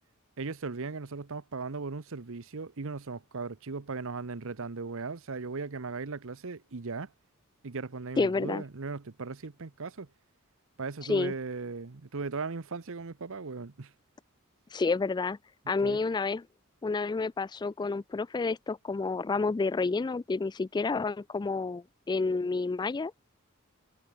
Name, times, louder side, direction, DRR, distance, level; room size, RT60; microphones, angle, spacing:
voice 1, 0.4-7.1 7.6-10.1 10.8-13.9 15.8-16.0, right 4 dB, 65° right, 0.9 m, -37 dB
voice 2, 8.2-8.6 11.1-11.3 14.7-15.4 15.7-16.4 16.8-23.1, left 4 dB, 20° left, 0.3 m, -29 dB
head